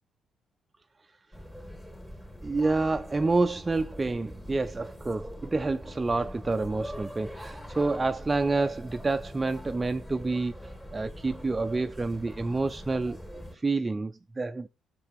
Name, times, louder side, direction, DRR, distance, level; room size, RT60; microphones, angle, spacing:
sound 1, 1.3-13.5, equal, 10° left, 2.9 m, -43 dB
voice 1, 2.4-10.6 10.9-13.2 13.5-14.7, right 3 dB, 20° right, 0.5 m, -28 dB
13.0 x 6.8 x 3.5 m
cardioid pair, 90°, 0 cm